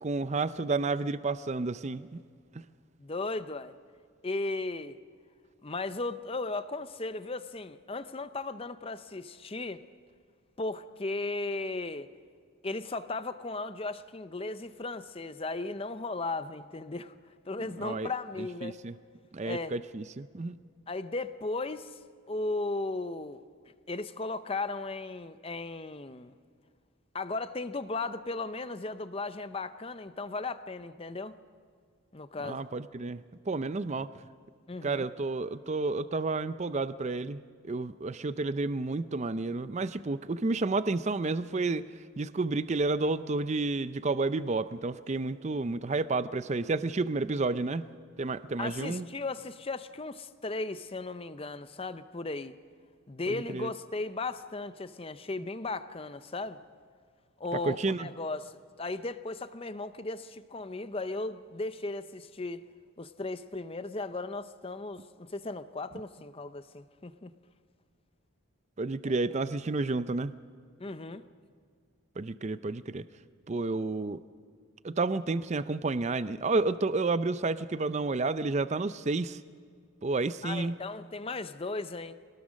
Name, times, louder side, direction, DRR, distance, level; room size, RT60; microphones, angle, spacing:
voice 1, 0.0-2.2 17.8-18.1 18.6-18.9 19.3-20.6 32.4-33.2 33.5-34.1 34.8-37.4 37.7-41.9 42.2-47.9 48.2-49.1 53.3-53.7 57.6-58.1 68.8-70.3 72.2-73.0 73.5-74.2 74.8-79.4 80.0-80.7, right 3 dB, 30° right, 13 dB, 0.5 m, -30 dB
voice 2, 3.0-3.8 4.2-5.0 5.6-9.8 10.6-12.1 12.6-17.1 17.5-18.8 19.4-19.8 20.9-22.0 22.3-23.4 23.9-26.4 27.1-31.4 32.1-32.7 34.7-35.1 48.6-52.5 53.1-56.6 57.4-62.6 63.0-67.3 70.8-71.2 80.4-82.1, left 3 dB, 25° left, 12 dB, 0.6 m, -36 dB
22.5 x 19.0 x 6.4 m, 2.1 s
head